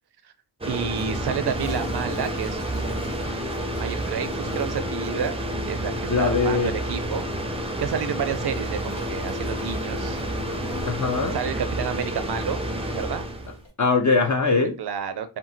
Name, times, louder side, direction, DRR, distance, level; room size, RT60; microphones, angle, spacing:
sound 1, 0.6-13.6, right 1 dB, 15° right, 0.5 m, -29 dB
voice 1, 0.7-2.6 3.8-5.4 5.7-7.3 7.8-10.2 11.3-13.3 14.8-15.4, right 7 dB, 60° right, 9 dB, 0.5 m, -30 dB
Toilet flush, 0.9-13.7, left 3 dB, 80° left, 1.1 m, -43 dB
voice 2, 6.1-6.7 10.9-11.4 13.8-14.8, left 4 dB, 40° left, 3 dB, 0.5 m, -21 dB
2.9 x 2.4 x 2.7 m, 0.30 s
cardioid pair, 45°, 44 cm